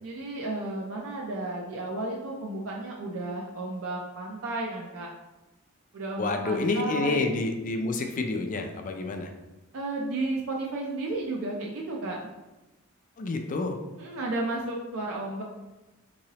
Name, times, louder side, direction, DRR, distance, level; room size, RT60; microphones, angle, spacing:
voice 1, 0.0-5.1 5.9-7.3 9.7-12.2 14.0-15.4, right 2 dB, 65° right, -1 dB, 0.5 m, -33 dB
voice 2, 6.2-9.3 13.2-13.8, left 3 dB, 40° left, 4 dB, 0.4 m, -28 dB
3.7 x 3.0 x 2.8 m, 1.1 s
head